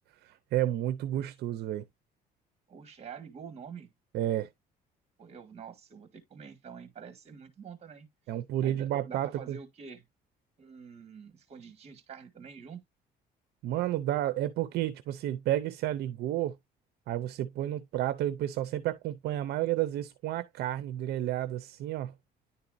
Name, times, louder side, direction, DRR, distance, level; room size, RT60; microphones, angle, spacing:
voice 1, 0.2-1.8 4.1-4.5 8.3-9.6 13.6-16.6 17.1-22.1, right 13 dB, 70° right, 0.6 m, -31 dB
voice 2, 2.7-3.9 5.2-8.1 8.6-10.0 10.6-12.8, right 6 dB, 40° right, 1.6 m, -47 dB
10.0 x 4.1 x 2.5 m
cardioid pair, 110°, 17 cm